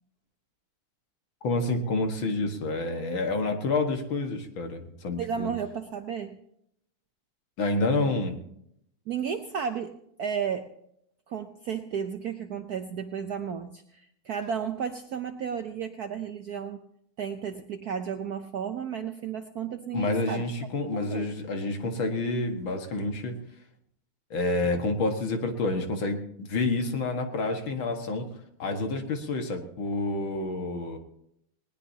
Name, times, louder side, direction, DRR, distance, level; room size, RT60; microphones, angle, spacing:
voice 1, 1.4-5.5 7.6-8.4 19.9-23.3 24.3-28.3 28.6-31.0, left 2 dB, 65° left, 5 dB, 2.3 m, -28 dB
voice 2, 5.2-6.4 9.1-10.7 11.3-16.8 17.2-20.4 20.8-21.3, right 7 dB, 65° right, 7 dB, 0.9 m, -33 dB
20.0 x 19.0 x 2.8 m, 0.74 s
omnidirectional pair, 2.4 m